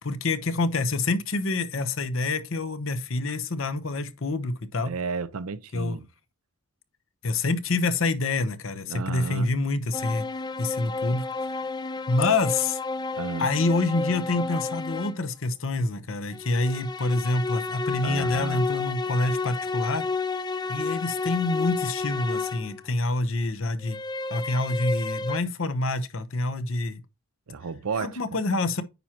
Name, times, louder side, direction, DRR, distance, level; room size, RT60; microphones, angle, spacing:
voice 1, 0.0-4.9 5.7-6.0 7.2-10.3 10.6-11.3 12.1-12.8 13.4-20.0 20.7-24.0 24.3-27.0 28.0-28.8, left 2 dB, 65° left, 0.9 m, -27 dB
voice 2, 4.8-6.0 8.9-9.5 13.2-13.5 18.0-18.7 27.5-28.4, right 5 dB, 85° right, 0.6 m, -33 dB
sound 1, 9.9-15.3 16.3-22.8 23.8-25.4, left 4 dB, 20° left, 0.4 m, -31 dB
9.3 x 5.8 x 2.9 m
head